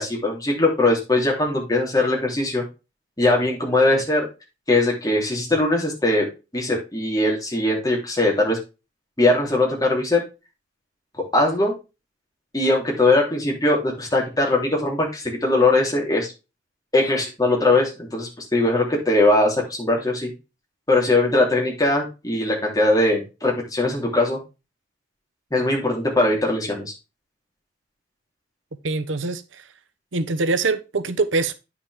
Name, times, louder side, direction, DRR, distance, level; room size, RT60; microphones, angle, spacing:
voice 1, 0.0-2.6 3.2-4.3 4.7-6.3 6.5-8.6 9.2-10.2 11.3-11.7 12.5-16.3 16.9-20.3 20.9-24.4 25.5-26.9, left 2 dB, 20° left, 3.4 m, -20 dB
voice 2, 28.8-29.4 30.1-31.5, right 3 dB, 85° right, 0.9 m, -23 dB
9.6 x 6.0 x 3.5 m
head